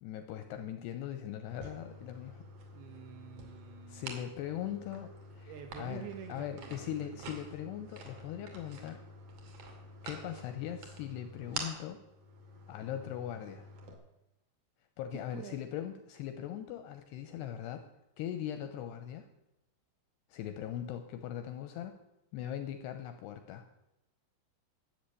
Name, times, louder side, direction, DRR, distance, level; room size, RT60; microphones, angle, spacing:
voice 1, 0.0-2.5 3.9-5.5 5.8-9.0 10.0-12.0 12.7-13.7 15.0-17.9 18.2-19.3 20.3-22.0 22.3-23.7, left 10 dB, 80° left, 8 dB, 2.5 m, -40 dB
sound 1, 1.5-13.9, right 2 dB, 50° right, 3.0 m, -48 dB
voice 2, 2.7-4.1 5.4-7.3 15.1-15.7, right 9 dB, 75° right, 6 dB, 2.4 m, -48 dB
13.5 x 8.1 x 8.4 m, 0.92 s
omnidirectional pair, 5.6 m